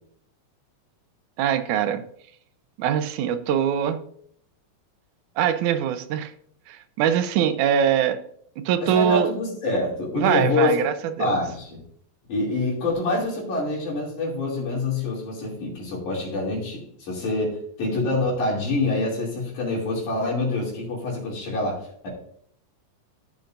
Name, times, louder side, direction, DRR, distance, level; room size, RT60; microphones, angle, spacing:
voice 1, 1.4-2.0 2.8-4.0 5.4-6.3 6.7-8.2 8.6-9.3 10.2-11.3, right 9 dB, 85° right, 11 dB, 2.1 m, -23 dB
voice 2, 8.8-10.8 11.2-11.8 12.3-22.1, left 2 dB, 80° left, -3 dB, 4.3 m, -26 dB
14.0 x 7.0 x 2.6 m, 0.66 s
omnidirectional pair, 3.4 m